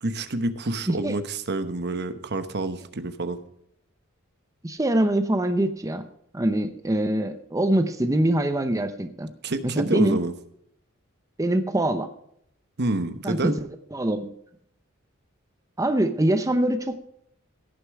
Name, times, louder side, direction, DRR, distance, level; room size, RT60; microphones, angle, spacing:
voice 1, 0.0-3.4 9.4-10.3 12.8-13.5, right 2 dB, 55° right, 10 dB, 1.0 m, -27 dB
voice 2, 4.6-6.1 6.3-9.3 9.6-10.2 11.4-12.1 13.2-14.3 15.8-17.0, right 1 dB, 15° right, 8 dB, 0.7 m, -24 dB
16.5 x 6.8 x 4.7 m, 0.72 s
head